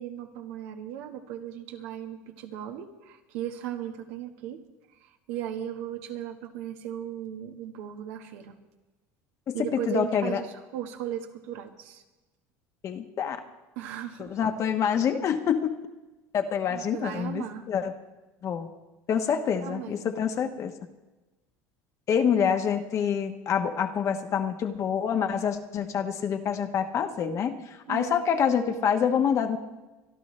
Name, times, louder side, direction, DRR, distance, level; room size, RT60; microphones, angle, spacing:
voice 1, 0.0-4.6 4.9-8.6 9.5-10.5 10.7-12.0 13.7-14.4 16.7-17.7 19.6-20.1 27.9-28.1, right 10 dB, 80° right, 5 dB, 1.4 m, -37 dB
voice 2, 9.5-10.4 12.8-13.4 14.2-15.7 16.3-17.9 18.4-18.7 19.1-20.7 22.1-29.6, left 7 dB, 45° left, 6 dB, 1.2 m, -26 dB
24.0 x 11.5 x 3.3 m, 1.1 s
supercardioid pair, 100°, 7 cm